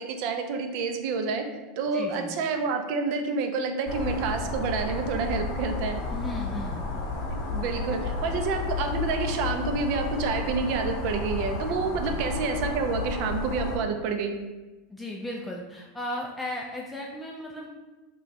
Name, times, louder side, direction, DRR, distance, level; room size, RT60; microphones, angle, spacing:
voice 1, 0.0-1.4 1.8-6.0 7.3-14.3, right 4 dB, 55° right, 6 dB, 0.5 m, -28 dB
voice 2, 1.9-2.4 6.1-6.9 12.0-12.2 14.9-17.7, left 1 dB, 10° left, -2 dB, 0.3 m, -36 dB
sound 1, 3.9-13.8, left 3 dB, 55° left, 0.7 m, -32 dB
3.0 x 2.3 x 4.1 m, 1.2 s
supercardioid pair, 130°, 0 cm